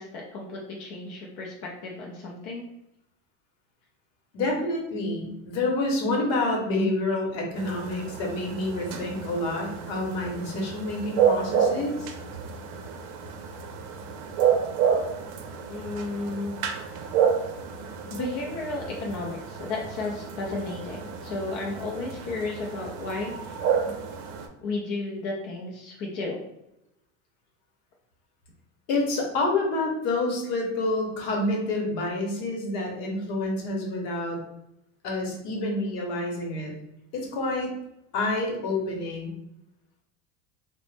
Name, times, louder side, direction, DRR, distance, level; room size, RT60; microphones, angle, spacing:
voice 1, 0.0-2.6 15.7-16.6 18.1-23.6 24.6-26.4, left 3 dB, 40° left, -2 dB, 0.4 m, -33 dB
voice 2, 4.3-12.1 28.9-34.4 35.0-36.7 37.1-37.7 38.1-39.3, left 2 dB, 60° left, 0 dB, 0.9 m, -28 dB
sound 1, 7.6-24.5, right 7 dB, 75° right, 0.6 m, -30 dB
2.9 x 2.1 x 3.2 m, 0.84 s
cardioid pair, 170°, 35 cm